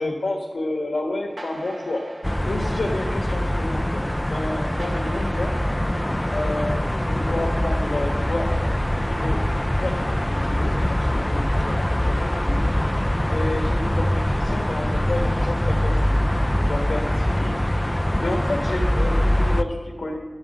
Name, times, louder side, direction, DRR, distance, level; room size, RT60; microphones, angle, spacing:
voice 1, 0.0-5.5 6.3-9.4 9.8-12.6 13.3-17.6 18.2-20.2, left 2 dB, 90° left, 1 dB, 1.3 m, -30 dB
sound 1, 1.4-8.2, right 1 dB, 50° right, 1.5 m, -45 dB
sound 2, 2.2-19.6, left 1 dB, 15° left, 0.5 m, -23 dB
12.5 x 7.3 x 7.6 m, 1.4 s
wide cardioid pair, 70°, 0 cm